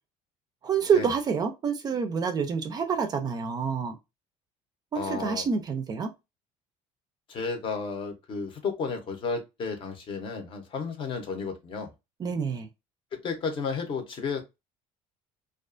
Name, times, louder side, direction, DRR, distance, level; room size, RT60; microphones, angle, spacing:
voice 1, 0.6-4.0 4.9-6.1 12.2-12.7, right 6 dB, 30° right, 0.4 m, -27 dB
voice 2, 4.9-5.5 7.3-11.9 13.1-14.4, left 5 dB, 40° left, 0.7 m, -32 dB
2.4 x 2.3 x 2.4 m
cardioid pair, 145°, 13 cm